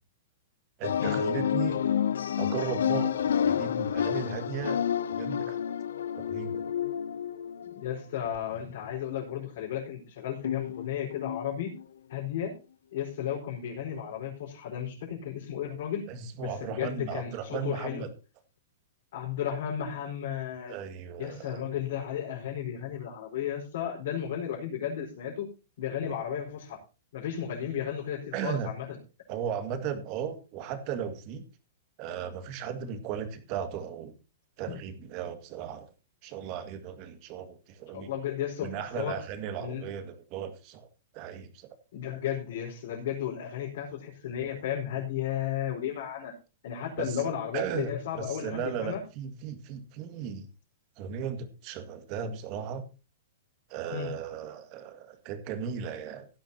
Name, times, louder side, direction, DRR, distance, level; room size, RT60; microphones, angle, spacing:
sound 1, 0.8-8.4 10.4-11.8 12.2-12.3, left 8 dB, 90° left, 0.5 m, -30 dB
voice 1, 0.8-1.8 2.4-4.8 5.1-5.6 6.2-6.6 16.1-18.1 20.7-21.6 28.3-28.7 29.3-31.4 32.0-34.2 34.6-35.9 36.2-38.1 38.6-40.9 41.1-41.7 47.0-50.5 51.0-52.8 53.7-56.3, right 8 dB, 40° right, 8 dB, 2.0 m, -36 dB
voice 2, 7.7-11.7 12.1-12.5 12.9-16.0 16.4-18.0 19.1-20.8 21.2-25.5 25.8-26.8 27.1-29.0 37.9-39.1 39.6-39.9 41.9-46.3 46.6-49.0 53.9-54.1, left 9 dB, 65° left, -4 dB, 4.7 m, -34 dB
16.5 x 11.0 x 2.9 m, 0.31 s
hypercardioid pair, 150°, 0 cm